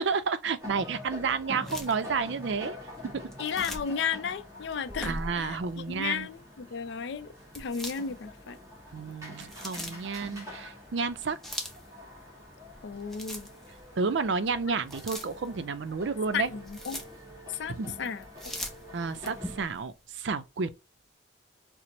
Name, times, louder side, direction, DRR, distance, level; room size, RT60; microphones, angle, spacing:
voice 1, 0.0-2.8 5.0-6.3 8.9-11.4 14.0-16.5 17.7-18.0 18.9-20.7, right 5 dB, 70° right, 0.4 m, -31 dB
sound 1, 0.6-19.6, left 1 dB, 15° right, 1.3 m, -46 dB
sound 2, 1.6-2.0 3.3-4.0 4.7-5.7 7.5-8.5 9.1-10.0 11.1-11.9 12.6-13.8 14.2-14.3 14.9-15.6 16.3-17.2 18.0-19.8, left 1 dB, ahead, 0.5 m, -40 dB
voice 2, 3.4-7.3 7.5-8.6 12.8-13.5 16.3-17.0 17.5-18.5, left 6 dB, 65° left, 0.4 m, -34 dB
4.3 x 2.0 x 2.9 m
head